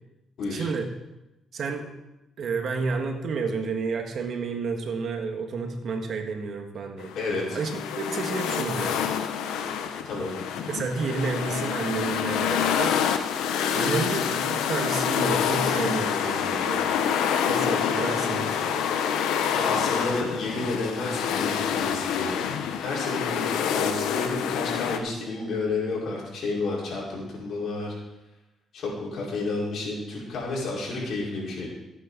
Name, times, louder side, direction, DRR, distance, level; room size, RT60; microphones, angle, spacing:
voice 1, 0.5-0.9 1.5-1.9 2.4-7.1 7.5-9.0 10.7-13.0 13.7-17.0 17.4-18.9, right 4 dB, 60° right, 4 dB, 1.6 m, -30 dB
sound 1, 7.0-25.0, left 8 dB, 90° left, 0.9 m, -27 dB
voice 2, 7.1-7.6 10.0-10.4 19.5-22.4 22.8-27.9 28.7-31.7, left 3 dB, 70° left, -4 dB, 4.9 m, -31 dB
15.5 x 8.9 x 4.0 m, 0.96 s
cardioid pair, 90°, 0 cm